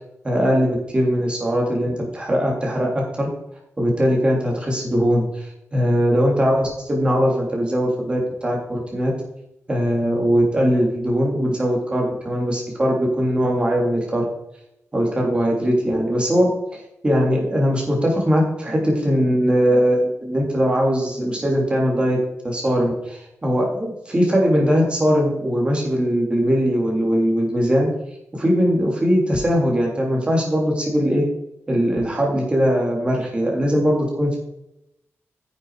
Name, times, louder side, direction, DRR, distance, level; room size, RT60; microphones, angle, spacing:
voice 1, 0.2-3.3 3.8-5.2 5.7-9.1 9.7-14.3 14.9-16.5 17.0-22.2 22.4-27.9 28.3-31.2 31.7-34.4, equal, 20° right, -1 dB, 3.1 m, -20 dB
10.5 x 7.6 x 4.9 m, 0.84 s
wide cardioid pair, 165°, 5 cm